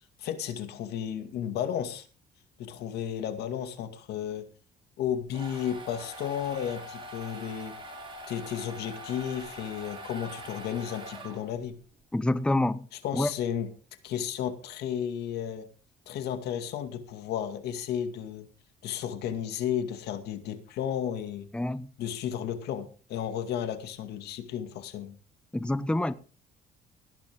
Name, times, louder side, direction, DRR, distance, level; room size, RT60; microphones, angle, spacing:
voice 1, 0.2-2.1 2.6-4.5 5.0-7.8 8.3-11.8 13.0-13.7 14.0-15.7 16.1-18.5 18.8-21.5 22.0-25.2, left 9 dB, 75° left, 2.2 m, -33 dB
sound 1, 5.1-11.7, right 1 dB, 30° right, 5.7 m, -43 dB
voice 2, 12.1-12.9 13.1-13.3 21.5-21.9 25.5-26.1, left 1 dB, 5° left, 0.9 m, -27 dB
18.0 x 10.5 x 3.7 m
cardioid pair, 110°, 17 cm